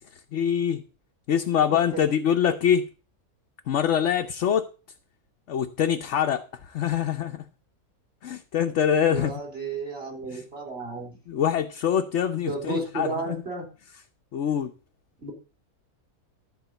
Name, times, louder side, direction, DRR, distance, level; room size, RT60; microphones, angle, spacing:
voice 1, 0.3-0.8 1.3-2.8 3.7-4.7 5.5-7.4 8.2-9.3 10.3-10.4 11.3-13.3 14.3-14.7, left 8 dB, 60° left, 1.0 m, -24 dB
voice 2, 1.7-2.1 9.1-11.2 12.5-13.7 15.2-15.3, right 3 dB, 40° right, 3.9 m, -33 dB
13.0 x 4.6 x 7.9 m
omnidirectional pair, 1.6 m